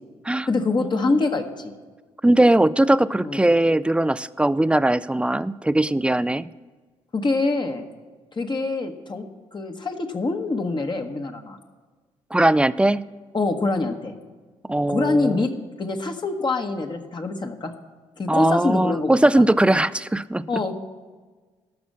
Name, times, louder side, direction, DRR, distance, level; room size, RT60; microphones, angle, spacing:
voice 1, 0.5-1.7 3.2-3.4 7.1-7.9 8.4-11.6 13.3-14.1 14.9-15.5 15.8-17.7 18.2-19.4 20.5-20.7, left 3 dB, 35° left, 4 dB, 1.2 m, -25 dB
voice 2, 2.2-6.4 12.3-13.0 14.7-15.3 18.3-20.6, right 1 dB, 10° right, 17 dB, 0.3 m, -19 dB
12.0 x 6.2 x 7.5 m, 1.4 s
supercardioid pair, 55°, 13 cm